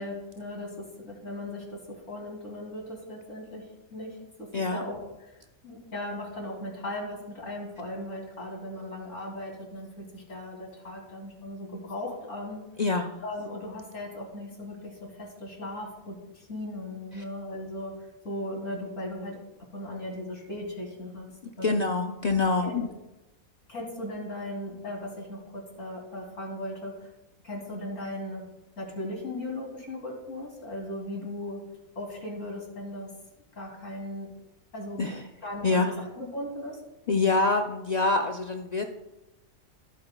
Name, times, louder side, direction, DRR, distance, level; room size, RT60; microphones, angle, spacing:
voice 1, 0.0-12.6 13.2-17.9 18.2-19.4 19.7-21.3 21.6-21.8 22.6-22.8 23.7-27.1 27.4-28.5 28.8-31.6 31.9-33.1 33.6-34.3 34.7-35.0 35.4-36.8, left 1 dB, 60° left, -1 dB, 3.0 m, -37 dB
voice 2, 12.8-13.1 17.1-17.2 21.6-22.9 35.0-35.2 35.6-35.9 37.1-38.8, left 3 dB, 90° left, 4 dB, 0.3 m, -25 dB
15.0 x 8.8 x 2.2 m, 0.97 s
omnidirectional pair, 1.5 m